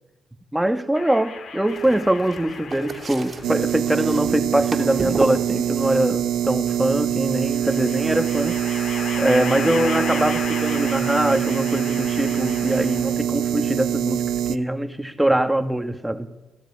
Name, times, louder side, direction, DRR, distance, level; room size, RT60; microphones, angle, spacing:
voice 1, 0.5-8.6 9.2-16.3, right 1 dB, 5° right, 1.8 m, -23 dB
sound 1, 1.0-3.6 4.7-5.7 7.3-13.3, left 5 dB, 65° left, 2.8 m, -35 dB
sound 2, 1.7-7.9, right 4 dB, 40° right, 2.8 m, -35 dB
sound 3, 3.4-14.6, right 10 dB, 80° right, 0.7 m, -24 dB
27.5 x 13.5 x 10.0 m
cardioid pair, 90°, 0 cm